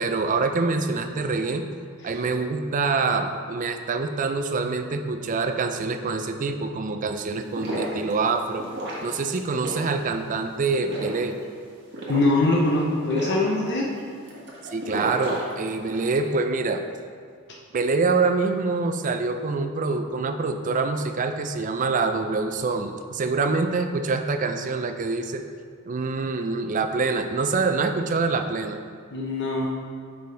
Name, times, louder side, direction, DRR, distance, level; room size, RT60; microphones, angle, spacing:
voice 1, 0.0-1.6 2.0-8.6 9.0-11.4 14.7-16.8 17.7-25.4 25.9-28.8, right 4 dB, 35° right, 7 dB, 0.4 m, -25 dB
sound 1, 7.3-16.1, right 1 dB, 55° right, 1.4 m, -35 dB
voice 2, 12.1-13.9 29.1-29.7, left 2 dB, 50° left, -2 dB, 0.7 m, -22 dB
6.7 x 5.1 x 3.8 m, 2.2 s
head